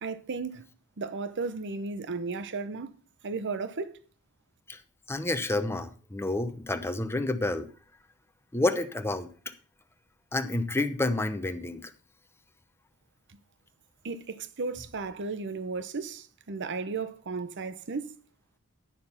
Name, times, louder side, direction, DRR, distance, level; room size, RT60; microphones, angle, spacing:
voice 1, 0.0-0.7 1.0-2.9 3.2-4.0 14.0-18.1, right 4 dB, 55° right, 0.7 m, -34 dB
voice 2, 5.1-7.7 8.5-9.3 10.3-11.9, left 2 dB, 10° left, 0.8 m, -29 dB
10.0 x 6.5 x 5.6 m
head